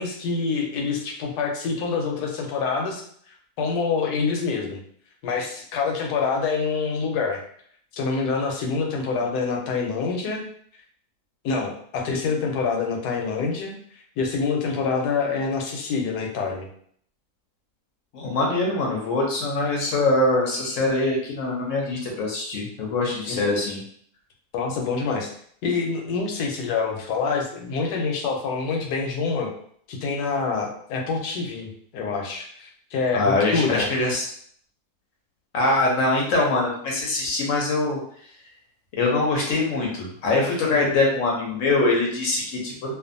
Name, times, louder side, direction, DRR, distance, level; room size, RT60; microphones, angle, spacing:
voice 1, 0.0-3.0 3.6-4.8 5.2-7.4 7.9-10.4 11.4-13.7 14.2-16.7 23.3-23.4 24.5-25.3 25.6-29.5 29.9-33.9 40.7-40.9, left 4 dB, 90° left, 1 dB, 1.2 m, -26 dB
voice 2, 18.1-23.8 33.1-34.3 35.5-38.0 39.0-42.9, left 2 dB, 65° left, -1 dB, 0.9 m, -23 dB
2.5 x 2.4 x 2.5 m, 0.62 s
omnidirectional pair, 1.6 m